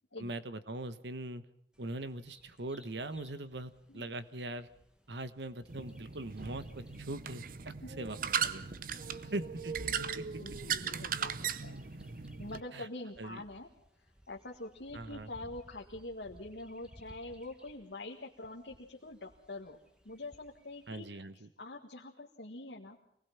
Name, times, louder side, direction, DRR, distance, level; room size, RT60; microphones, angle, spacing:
voice 1, 0.2-1.4 1.8-4.7 5.1-8.2 8.4-8.7 9.3-10.2 12.7-12.9 13.2-13.4 14.9-15.3 20.9-21.5, right 2 dB, 75° right, 13 dB, 1.2 m, -41 dB
Bird vocalization bird call bird song, 1.7-21.1, equal, 5° right, 1.7 m, -62 dB
sound 1, 5.7-12.6, right 7 dB, 50° right, 0.8 m, -38 dB
voice 2, 7.8-8.4 9.1-9.3 10.4-11.8 12.4-13.7 14.3-19.8 20.1-21.2 21.6-23.0, left 2 dB, 75° left, -1 dB, 1.8 m, -45 dB
25.0 x 19.5 x 5.8 m, 0.72 s
head